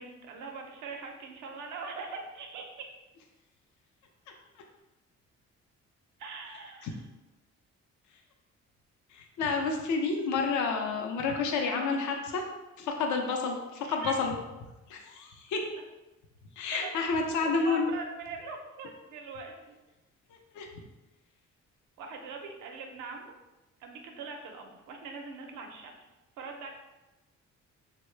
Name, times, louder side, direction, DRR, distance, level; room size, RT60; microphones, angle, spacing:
voice 1, 0.0-2.7 6.2-7.0 13.8-14.1 16.7-17.0 17.4-19.8 22.0-23.4 23.8-26.1 26.4-26.7, right 4 dB, 85° right, 3 dB, 0.6 m, -42 dB
voice 2, 9.1-12.5 12.8-14.3 14.9-15.6 16.6-17.9 20.5-20.7, left 4 dB, 75° left, 2 dB, 0.5 m, -30 dB
3.6 x 2.1 x 3.2 m, 1.1 s
cardioid pair, 90°, 30 cm